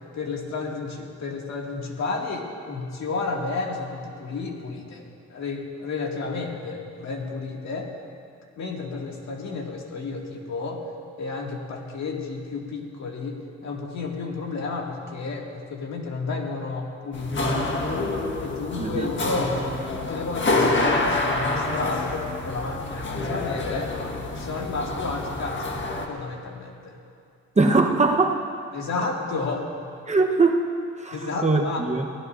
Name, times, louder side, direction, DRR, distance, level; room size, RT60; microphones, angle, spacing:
voice 1, 0.1-7.9 8.6-10.8 11.2-18.0 18.4-19.6 19.9-23.9 24.3-25.8 26.1-27.0 28.7-29.7 31.1-31.8, left 3 dB, 65° left, -1 dB, 2.3 m, -32 dB
sound 1, 17.1-26.1, left 2 dB, 40° left, 1.6 m, -27 dB
voice 2, 18.8-19.1 27.6-28.4 30.1-30.6 31.0-32.1, right 3 dB, 25° right, 2 dB, 1.1 m, -21 dB
23.5 x 17.0 x 2.7 m, 2.4 s
cardioid pair, 90°, 30 cm